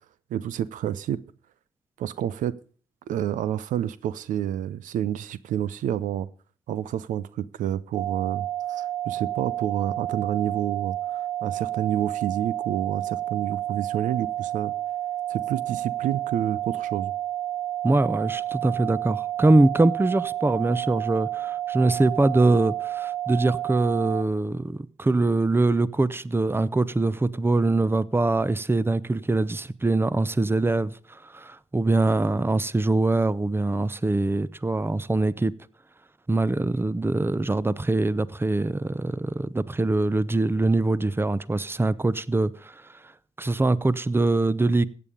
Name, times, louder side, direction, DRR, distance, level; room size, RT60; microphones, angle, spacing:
voice 1, 0.3-1.2 2.0-2.5 3.1-6.3 6.7-14.7 15.3-17.1, right 10 dB, 70° right, 0.6 m, -29 dB
sound 1, 7.9-24.2, right 13 dB, 45° right, 2.2 m, -30 dB
voice 2, 17.8-35.5 36.3-43.1 43.4-44.9, right 2 dB, 15° right, 0.8 m, -23 dB
15.0 x 8.7 x 5.3 m
hypercardioid pair, 45°, 14 cm